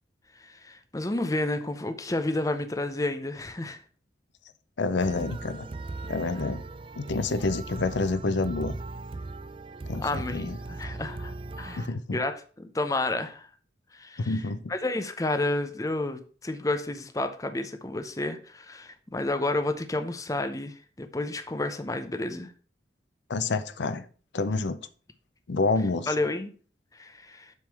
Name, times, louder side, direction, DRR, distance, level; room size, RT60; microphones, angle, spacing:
voice 1, 0.4-3.8 10.0-13.5 13.9-14.4 14.7-22.5 26.1-26.5 26.9-27.5, left 2 dB, 20° left, 0.6 m, -31 dB
voice 2, 4.8-5.7 6.1-6.6 7.0-8.8 9.9-10.6 11.8-12.2 14.2-14.7 23.3-24.1 24.3-24.8 25.5-26.1, left 3 dB, 75° left, 0.6 m, -28 dB
sound 1, 5.0-11.9, right 2 dB, 30° right, 0.4 m, -39 dB
7.5 x 3.7 x 6.1 m
head